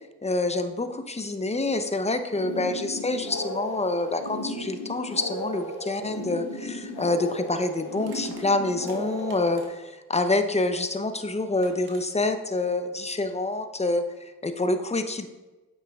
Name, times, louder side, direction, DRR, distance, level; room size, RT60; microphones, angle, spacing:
voice 1, 0.2-15.3, left 2 dB, 15° left, 8 dB, 0.7 m, -27 dB
sound 1, 2.3-9.7, left 1 dB, 85° left, 1.2 m, -35 dB
Crushing, 6.7-6.8 8.0-10.0 11.2-11.3 11.6-12.0, right 3 dB, 70° right, 1.4 m, -49 dB
8.5 x 5.5 x 2.4 m, 1.1 s
supercardioid pair, 45°, 38 cm